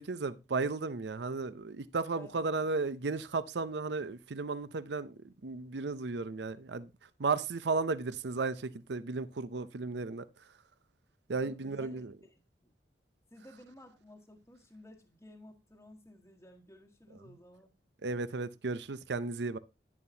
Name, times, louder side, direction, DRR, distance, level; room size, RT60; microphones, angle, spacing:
voice 1, 0.0-10.5 11.3-12.1 18.0-19.6, right 3 dB, 70° right, 0.6 m, -34 dB
voice 2, 11.3-12.0 12.6-12.7 13.3-17.7, left 1 dB, 15° left, 1.3 m, -54 dB
11.0 x 10.5 x 2.7 m
head